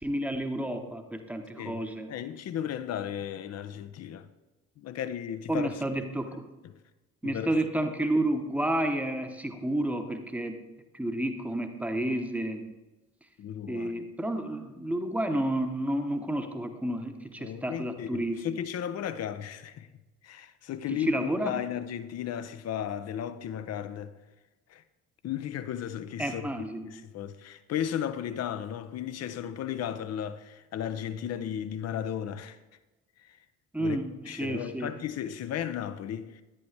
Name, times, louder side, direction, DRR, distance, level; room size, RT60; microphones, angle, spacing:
voice 1, 0.0-2.1 5.5-6.4 7.2-10.6 10.9-12.7 13.7-18.4 21.1-21.5 26.2-26.9 33.7-34.1 34.4-34.9, right 1 dB, 5° right, 1.0 m, -30 dB
voice 2, 1.6-4.3 4.8-5.8 6.6-6.8 7.2-7.5 13.4-14.1 17.4-19.9 20.2-24.1 24.7-24.8 25.2-32.6 33.2-33.4 33.8-34.0 34.3-36.4, left 9 dB, 40° left, 0.7 m, -35 dB
10.5 x 8.5 x 3.3 m
figure-of-eight pair, 50°, 41 cm